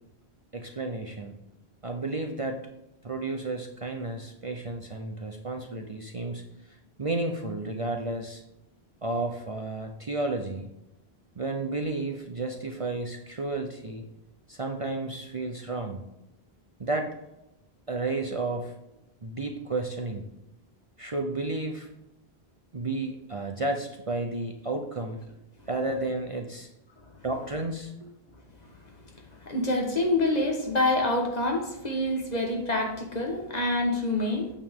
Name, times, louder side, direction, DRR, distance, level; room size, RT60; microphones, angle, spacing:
voice 1, 0.5-1.3 1.8-2.6 3.0-6.4 7.0-8.4 9.0-10.7 11.4-14.0 14.5-16.0 16.8-17.1 17.9-18.7 19.2-20.3 21.0-21.9 22.7-25.2 25.7-26.7 27.2-28.1, right 2 dB, 35° right, 3 dB, 0.7 m, -32 dB
voice 2, 29.4-34.5, left 2 dB, 40° left, 2 dB, 1.5 m, -26 dB
8.9 x 6.9 x 3.7 m, 0.90 s
omnidirectional pair, 1.1 m